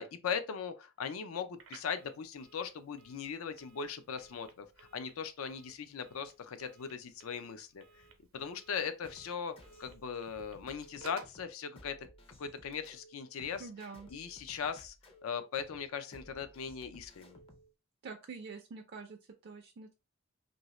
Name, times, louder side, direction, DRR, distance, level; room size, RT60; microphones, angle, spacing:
voice 1, 0.0-7.8 8.3-9.5 9.8-12.0 12.4-13.7 14.1-14.9 15.2-17.4, left 6 dB, 80° left, 0.5 m, -39 dB
Telephone, 1.5-11.4, right 4 dB, 75° right, 0.7 m, -58 dB
sound 1, 9.0-17.7, left 1 dB, 30° left, 0.5 m, -57 dB
voice 2, 13.6-14.1 18.0-19.9, right 4 dB, 50° right, 0.4 m, -46 dB
2.7 x 2.6 x 3.0 m
head